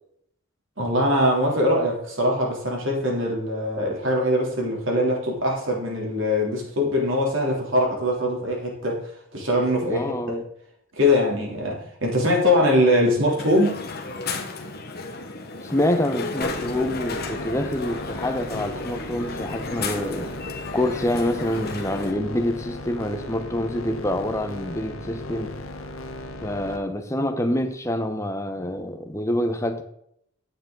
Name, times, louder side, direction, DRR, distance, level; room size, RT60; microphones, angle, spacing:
voice 1, 0.8-9.0 9.3-10.3 11.0-13.8, left 1 dB, 60° right, -1 dB, 3.2 m, -22 dB
voice 2, 9.9-10.4 15.6-20.3 20.7-25.6 26.4-29.8, left 1 dB, 15° left, 8 dB, 0.9 m, -26 dB
Crowd, 13.4-22.1, left 3 dB, 45° left, 1.3 m, -33 dB
sound 1, 16.4-26.8, left 1 dB, 70° left, 1.2 m, -37 dB
9.7 x 9.0 x 3.9 m, 0.71 s
head